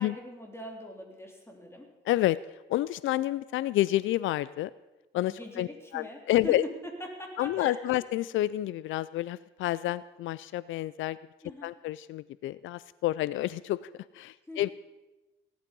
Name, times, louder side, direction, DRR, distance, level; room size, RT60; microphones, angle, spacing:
voice 1, 0.0-1.9 5.3-6.6 7.0-8.0 11.4-11.8 14.5-14.7, left 1 dB, 10° left, 2 dB, 3.5 m, -42 dB
voice 2, 2.1-2.4 2.7-4.7 5.1-5.7 5.9-6.6 7.4-11.2 11.6-13.8 14.1-14.7, left 15 dB, 80° left, 18 dB, 0.4 m, -29 dB
17.5 x 11.0 x 5.3 m, 1.1 s
cardioid pair, 90°, 20 cm